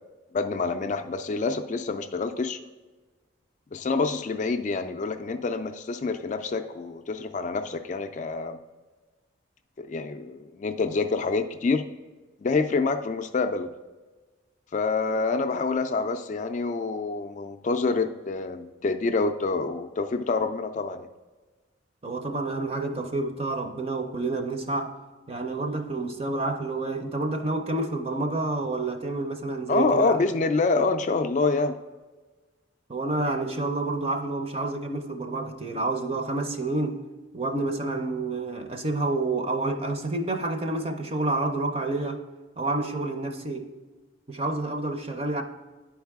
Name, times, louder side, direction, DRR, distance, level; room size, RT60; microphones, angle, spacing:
voice 1, 0.3-2.6 3.7-8.6 9.8-11.8 12.4-13.7 14.7-21.1 29.7-31.8, left 3 dB, 40° left, 7 dB, 0.3 m, -27 dB
voice 2, 22.0-25.0 25.3-30.2 32.9-37.0 37.3-42.2 42.6-43.7 44.3-45.4, right 2 dB, 30° right, 6 dB, 0.5 m, -29 dB
10.5 x 4.6 x 3.5 m, 1.3 s
head